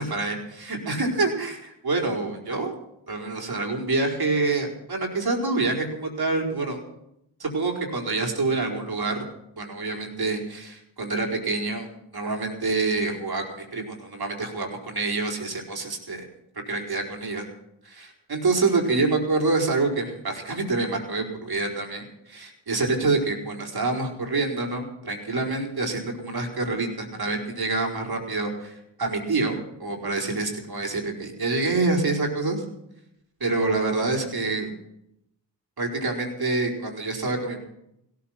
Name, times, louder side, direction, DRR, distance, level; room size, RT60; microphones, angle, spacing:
voice 1, 0.0-1.6 1.8-2.7 3.1-6.8 7.4-9.2 9.6-11.9 12.1-16.2 16.7-17.5 17.8-32.6 33.4-34.7 35.8-37.6, right 3 dB, 50° right, 1 dB, 4.6 m, -27 dB
16.5 x 14.5 x 5.9 m, 0.80 s
cardioid pair, 55°, 46 cm